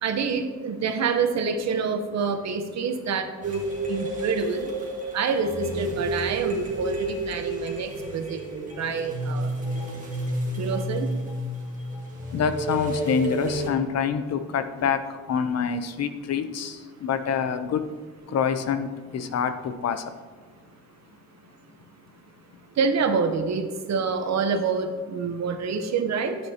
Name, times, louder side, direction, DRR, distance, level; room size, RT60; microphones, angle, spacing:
voice 1, 0.0-4.7 5.1-9.6 10.6-11.1 22.8-26.4, right 5 dB, 60° right, 6 dB, 1.0 m, -27 dB
sound 1, 3.4-13.7, right 1 dB, 25° right, 2.1 m, -31 dB
voice 2, 12.3-17.9 18.3-20.1, left 7 dB, 60° left, 9 dB, 0.7 m, -26 dB
9.6 x 9.0 x 2.9 m, 1.5 s
cardioid pair, 90°, 30 cm